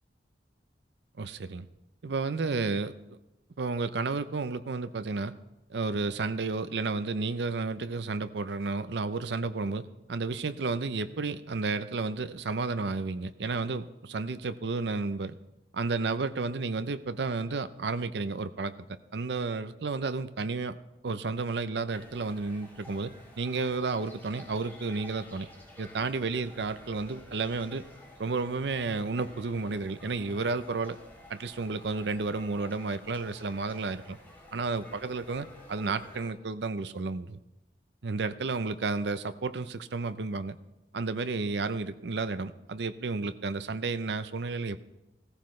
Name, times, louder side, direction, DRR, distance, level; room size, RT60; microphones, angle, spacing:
voice 1, 1.2-1.7 2.0-3.2 3.6-5.3 5.7-9.8 10.1-15.4 15.7-18.7 19.1-20.8 21.0-23.1 23.4-25.5 25.8-27.8 28.2-31.0 31.3-34.2 34.5-37.4 38.0-40.6 40.9-44.8, right 3 dB, 75° right, 12 dB, 0.6 m, -32 dB
sound 1, 21.9-36.3, left 1 dB, 10° left, 2.3 m, -51 dB
17.0 x 14.5 x 3.2 m, 0.98 s
head